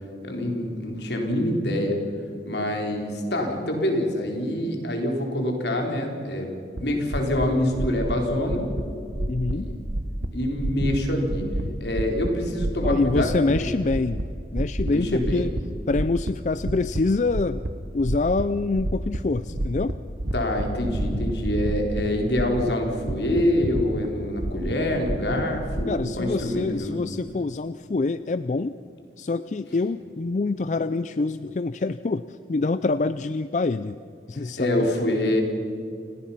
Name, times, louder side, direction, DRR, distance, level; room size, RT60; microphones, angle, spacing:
voice 1, 0.2-2.0 2.4-6.5 6.8-8.7 9.5-9.8 10.3-11.4 11.8-13.7 14.8-15.5 20.3-27.0 34.3-35.4, left 1 dB, 75° left, 2 dB, 3.9 m, -26 dB
sound 1, 6.8-6.9 7.1-7.5 7.7-8.1 8.4-8.8 9.1-9.5 9.9-10.3 10.6-11.0 11.3-11.6 11.9-12.3 12.6-13.6 13.9-14.3 14.6-14.9 15.2-15.6 15.9-17.0 17.3-17.7 18.0-18.4 18.7-19.2 19.5-19.9 20.2-22.0 22.3-22.7 23.0-24.1 24.4-25.9, right 1 dB, 65° right, 1.2 m, -28 dB
voice 2, 8.7-9.8 11.4-11.8 12.8-14.3 14.5-15.5 15.9-17.7 17.9-20.0 25.9-28.8 29.2-34.0 34.3-34.9, left 3 dB, 40° left, 13 dB, 0.4 m, -26 dB
29.5 x 18.0 x 5.7 m, 2.5 s
head